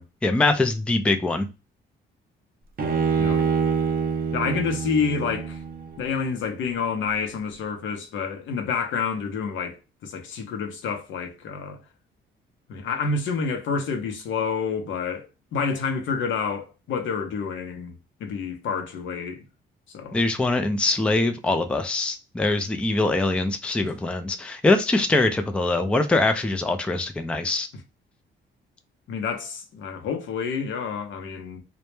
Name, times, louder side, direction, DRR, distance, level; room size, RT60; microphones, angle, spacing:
voice 1, 0.2-1.5 20.1-27.7, left 2 dB, 5° left, 0.3 m, -23 dB
Bowed string instrument, 2.8-6.1, right 6 dB, 50° right, 0.6 m, -25 dB
voice 2, 3.2-3.5 4.3-5.6 6.0-11.8 12.7-15.3 15.5-17.9 18.2-19.4 19.9-20.2 29.1-31.6, left 5 dB, 75° left, 0.6 m, -28 dB
2.1 x 2.0 x 3.0 m
cardioid pair, 90°, 20 cm